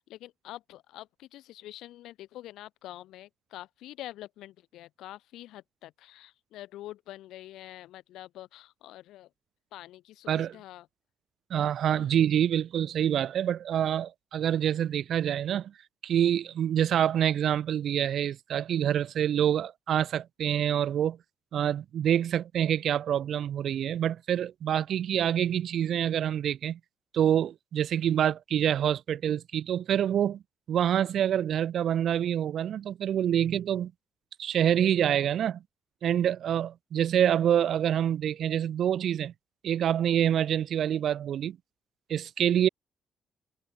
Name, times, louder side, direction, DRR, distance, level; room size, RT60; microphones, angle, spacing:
voice 1, 0.0-9.3 9.7-10.9 11.8-12.2, left 14 dB, 90° left, 3.0 m, -46 dB
voice 2, 11.5-15.7 16.0-21.2 21.5-26.8 27.1-30.4 30.7-33.9 34.4-35.6 36.0-39.3 39.6-41.6 42.1-42.7, right 10 dB, 65° right, 0.6 m, -26 dB
cardioid pair, 90°, 0 cm